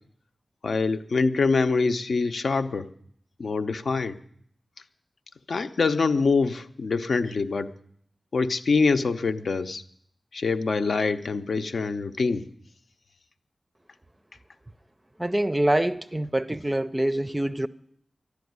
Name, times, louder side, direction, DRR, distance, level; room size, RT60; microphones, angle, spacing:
voice 1, 0.6-2.9 3.4-4.2 5.5-7.7 8.3-9.8 10.3-12.5, left 4 dB, 70° left, 0.8 m, -24 dB
voice 2, 15.2-17.7, right 1 dB, 15° right, 0.5 m, -25 dB
12.0 x 11.5 x 9.5 m
wide cardioid pair, 110°, 0 cm